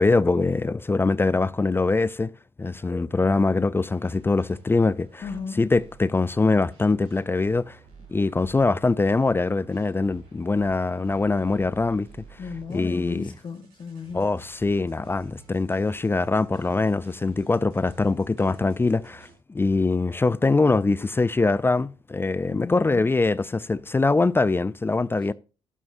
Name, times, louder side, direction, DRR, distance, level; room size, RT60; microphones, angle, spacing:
voice 1, 0.0-2.3 2.6-5.3 5.6-7.8 8.1-12.1 12.7-13.3 14.1-25.3, left 3 dB, 20° left, 0.5 m, -23 dB
sound 1, 3.9-19.3, right 6 dB, 90° right, 6.4 m, -51 dB
voice 2, 5.2-5.6 12.4-14.3 22.5-23.1, left 5 dB, 45° left, 1.5 m, -35 dB
12.0 x 11.0 x 2.7 m
hypercardioid pair, 55°, 11 cm